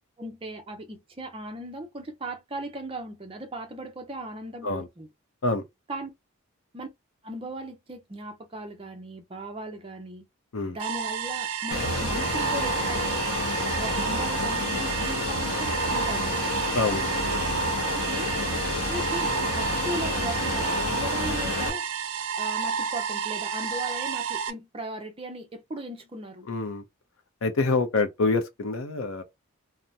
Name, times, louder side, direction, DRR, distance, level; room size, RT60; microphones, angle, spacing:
voice 1, 0.2-5.1 5.9-6.1 6.7-6.9 7.2-10.2 10.7-13.2 13.8-16.4 17.9-18.3 18.9-21.8 22.4-26.5, right 1 dB, 25° right, 0.5 m, -37 dB
sound 1, 10.8-24.5, right 7 dB, 80° right, 0.4 m, -30 dB
Fixed-wing aircraft airplane, 11.7-21.7, left 2 dB, 85° left, 0.9 m, -29 dB
voice 2, 26.4-26.8 27.4-29.2, left 3 dB, 70° left, 0.6 m, -26 dB
2.7 x 2.0 x 3.4 m
head